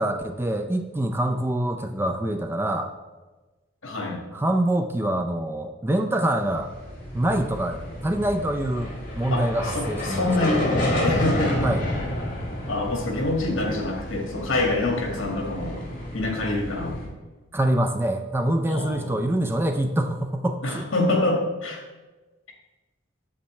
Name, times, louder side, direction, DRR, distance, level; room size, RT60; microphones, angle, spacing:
voice 1, 0.0-2.9 4.3-6.7 7.1-10.6 11.6-11.8 17.5-20.9, right 1 dB, 10° right, 6 dB, 0.3 m, -25 dB
voice 2, 3.8-4.2 9.3-9.4 9.8-10.7 11.0-11.7 12.7-15.8 16.1-17.1 18.7-19.1 20.6-21.8, left 2 dB, 75° left, 1 dB, 1.7 m, -26 dB
sound 1, 6.4-17.1, equal, 10° left, 2.7 m, -38 dB
sound 2, 8.5-16.9, left 1 dB, 40° left, 2.0 m, -29 dB
8.6 x 7.3 x 3.1 m, 1.2 s
head